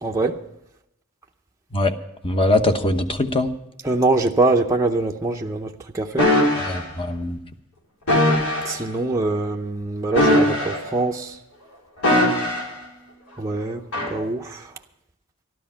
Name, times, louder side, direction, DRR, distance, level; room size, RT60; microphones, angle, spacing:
voice 1, 0.0-0.4 3.8-6.3 8.6-11.4 13.4-14.7, right 2 dB, 15° right, 0.6 m, -23 dB
voice 2, 2.2-3.5 6.7-7.4, left 2 dB, 25° left, 1.0 m, -21 dB
sound 1, 6.2-6.8 8.1-8.7 10.1-11.0 12.0-12.8 13.9-14.2, left 1 dB, 80° left, 4.7 m, -19 dB
12.5 x 12.5 x 5.6 m
head